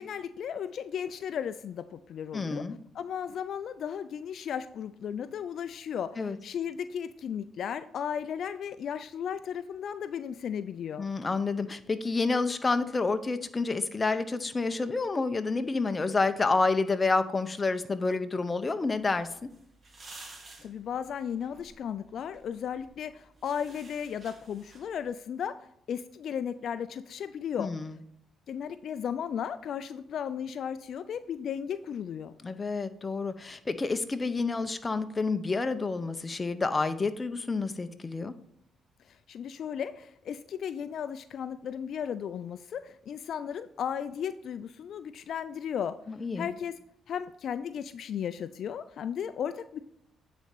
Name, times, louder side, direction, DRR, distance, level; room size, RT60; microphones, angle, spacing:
voice 1, 0.0-2.6 2.9-11.0 20.3-27.7 28.5-32.3 39.0-46.0 46.4-46.7 47.1-49.8, left 8 dB, 65° left, 12 dB, 0.3 m, -35 dB
voice 2, 2.3-2.8 6.2-6.4 11.0-19.3 27.6-28.0 32.4-38.3 46.1-46.5, left 3 dB, 25° left, 10 dB, 0.6 m, -29 dB
sound 1, 18.9-25.1, right 2 dB, 35° right, 1.4 m, -53 dB
9.1 x 4.2 x 5.2 m, 0.74 s
cardioid pair, 90°, 0 cm